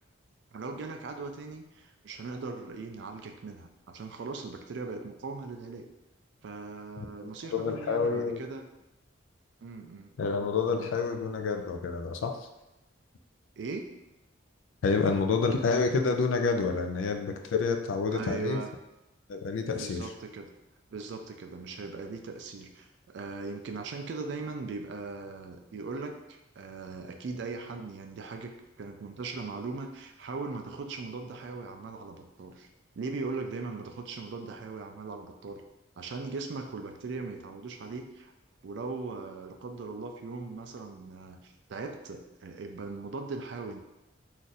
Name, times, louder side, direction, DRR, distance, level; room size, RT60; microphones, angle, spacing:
voice 1, 0.5-5.9 6.4-8.7 9.6-10.1 10.7-10.9 13.6-13.9 18.1-18.7 19.7-20.5 20.9-32.7 33.0-35.6 36.0-38.3 38.6-43.8, right 3 dB, 60° right, 6 dB, 0.3 m, -39 dB
voice 2, 7.0-8.4 10.2-12.4 14.8-18.6 19.3-20.1, left 4 dB, 75° left, 5 dB, 0.4 m, -28 dB
2.6 x 2.4 x 4.0 m, 0.97 s
head